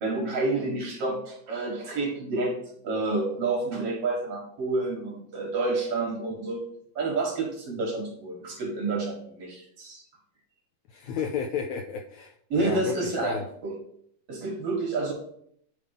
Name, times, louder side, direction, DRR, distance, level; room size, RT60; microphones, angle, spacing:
voice 1, 0.0-2.6 2.8-6.6 7.0-10.0 12.5-13.7 14.3-15.1, right 3 dB, 55° right, 0 dB, 2.2 m, -29 dB
voice 2, 10.9-13.4, left 7 dB, 80° left, 3 dB, 1.6 m, -32 dB
9.9 x 3.6 x 4.9 m, 0.67 s
omnidirectional pair, 3.8 m